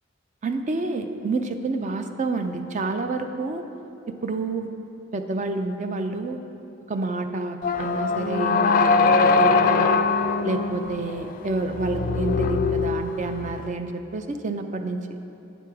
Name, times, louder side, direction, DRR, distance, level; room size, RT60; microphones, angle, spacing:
voice 1, 0.4-3.6 4.1-4.7 5.1-6.4 6.9-10.0 10.4-15.0, right 3 dB, 35° right, 7 dB, 0.5 m, -28 dB
sound 1, 7.6-13.6, left 4 dB, 45° left, 0.3 m, -22 dB
9.1 x 6.2 x 4.7 m, 2.9 s
head